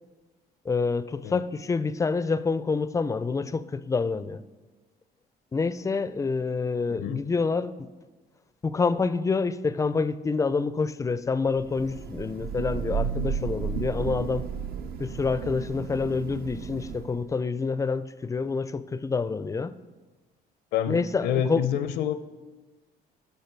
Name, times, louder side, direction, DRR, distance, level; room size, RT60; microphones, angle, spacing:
voice 1, 0.7-4.4 5.5-7.7 8.6-14.4 15.0-19.8 20.9-21.7, left 4 dB, 20° left, 0.4 m, -27 dB
Thunder / Rain, 11.6-17.3, right 7 dB, 65° right, 0.7 m, -33 dB
voice 2, 20.7-22.1, left 9 dB, 80° left, 0.6 m, -28 dB
12.5 x 5.5 x 4.5 m
cardioid pair, 110°, 17 cm